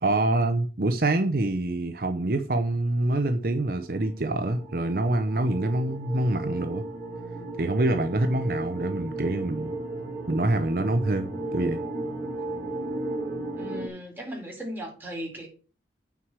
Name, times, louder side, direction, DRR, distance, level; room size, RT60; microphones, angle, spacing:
voice 1, 0.0-6.8 7.6-9.7 10.3-11.8, right 2 dB, 55° right, 0.7 m, -26 dB
sound 1, 3.2-13.9, right 2 dB, 35° right, 4.6 m, -35 dB
voice 2, 13.6-15.5, equal, 10° right, 3.9 m, -37 dB
9.2 x 4.8 x 7.4 m
head